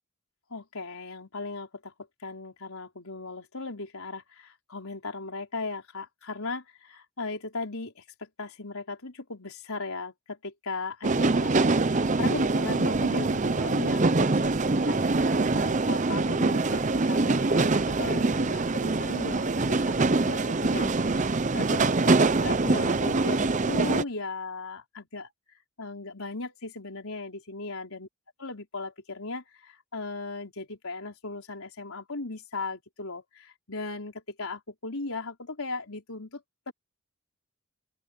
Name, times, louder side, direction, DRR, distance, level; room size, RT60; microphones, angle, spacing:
voice 1, 0.5-1.9 2.2-25.3 25.8-28.1 28.4-36.7, left 3 dB, 70° left, 4.2 m, -37 dB
sound 1, 11.0-24.0, right 3 dB, 35° right, 0.6 m, -24 dB
open air
head